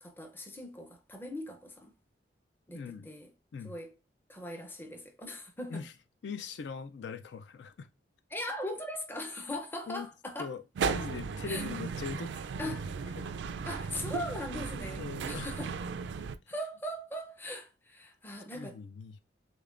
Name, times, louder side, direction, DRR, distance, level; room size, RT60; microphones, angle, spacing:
voice 1, 0.0-1.9 2.7-3.3 3.6-3.9 4.3-5.8 8.3-10.5 11.5-11.6 12.6-12.9 13.7-15.7 16.5-18.8, left 1 dB, 10° left, 0.6 m, -40 dB
voice 2, 2.7-3.1 3.5-3.7 5.7-5.9 6.2-7.9 9.5-9.6 9.9-10.1 10.4-12.8 13.2-13.3 15.0-15.8 18.5-19.2, left 5 dB, 70° left, 0.3 m, -41 dB
sound 1, 10.8-16.4, right 6 dB, 70° right, 0.3 m, -36 dB
6.5 x 2.2 x 2.4 m
head